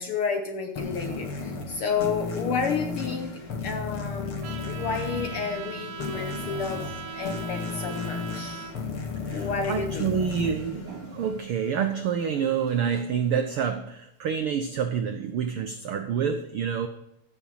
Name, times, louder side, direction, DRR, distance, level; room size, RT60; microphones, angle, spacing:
voice 1, 0.0-8.7 9.3-10.1, left 5 dB, 65° left, 5 dB, 1.4 m, -31 dB
sound 1, 0.8-11.9, left 4 dB, 45° left, 2.7 m, -34 dB
Trumpet, 4.4-8.7, right 6 dB, 60° right, 2.4 m, -40 dB
voice 2, 9.3-16.9, right 7 dB, 85° right, 8 dB, 1.2 m, -28 dB
15.0 x 7.1 x 5.6 m, 0.82 s
omnidirectional pair, 3.4 m